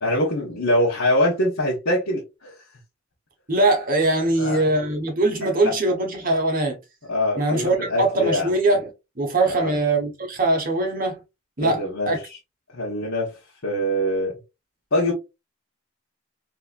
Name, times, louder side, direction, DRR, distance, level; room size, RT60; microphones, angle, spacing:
voice 1, 0.0-2.6 4.4-4.6 5.6-5.7 7.1-8.5 9.5-9.7 11.6-12.4 12.7-13.3 13.6-14.3 14.9-15.1, left 1 dB, 80° left, 1.1 m, -23 dB
voice 2, 3.5-6.8 7.4-8.9 9.2-11.2 11.6-12.2, right 2 dB, 40° right, 1.0 m, -22 dB
3.4 x 2.9 x 2.4 m
head